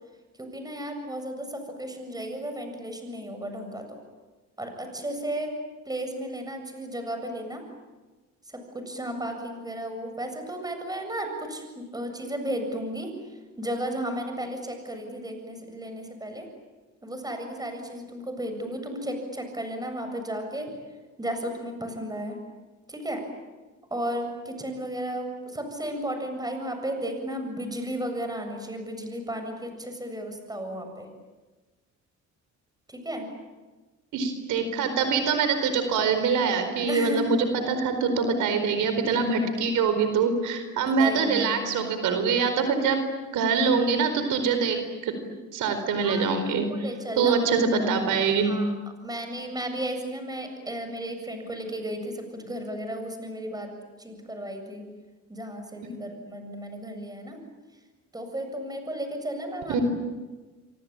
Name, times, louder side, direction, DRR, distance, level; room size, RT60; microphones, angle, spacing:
voice 1, 0.4-4.0 4.6-5.5 5.9-7.6 8.5-16.5 17.0-20.7 21.2-22.4 22.9-23.2 23.9-31.1 32.9-33.3 36.9-37.4 41.0-41.8 46.0-47.4 48.4-53.7 54.0-54.9 55.3-57.4 58.1-59.8, right 1 dB, 15° right, 5 dB, 7.6 m, -34 dB
voice 2, 34.1-43.0 43.3-44.8 45.0-45.1 45.5-46.7 47.2-48.5 59.7-59.8, right 5 dB, 85° right, 8 dB, 4.6 m, -24 dB
27.5 x 24.0 x 9.0 m, 1.3 s
cardioid pair, 90°, 30 cm